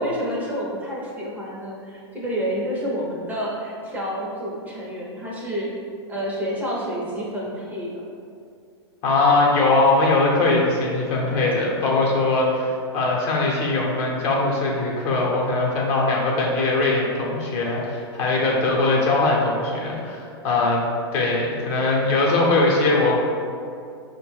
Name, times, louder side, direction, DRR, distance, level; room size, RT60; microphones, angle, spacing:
voice 1, 0.0-5.7 6.1-8.0, equal, 10° right, -6 dB, 0.7 m, -29 dB
voice 2, 9.0-20.8 21.1-23.1, left 2 dB, 45° left, -3 dB, 0.9 m, -21 dB
4.6 x 2.2 x 3.1 m, 2.4 s
hypercardioid pair, 120°, 14 cm